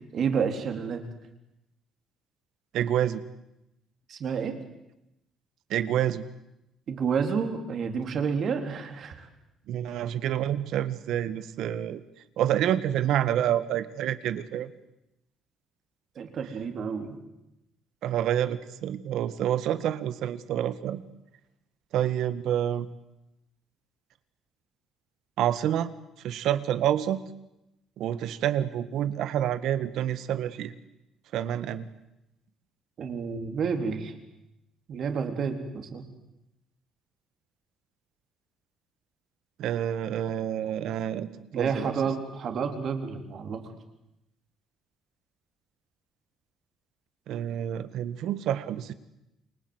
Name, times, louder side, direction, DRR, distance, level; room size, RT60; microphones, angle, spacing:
voice 1, 0.1-1.0 4.1-4.6 6.9-9.3 16.2-17.2 33.0-34.1 34.9-36.1 41.5-43.6, right 6 dB, 45° right, 6 dB, 3.8 m, -30 dB
voice 2, 2.7-3.2 5.7-6.2 9.7-12.0 12.4-14.7 18.0-21.0 21.9-22.9 25.4-25.9 26.2-27.2 28.0-30.7 31.3-31.9 39.6-41.9 47.3-48.9, right 11 dB, 70° right, 13 dB, 1.8 m, -28 dB
29.0 x 24.5 x 8.2 m, 0.90 s
cardioid pair, 145°, 0 cm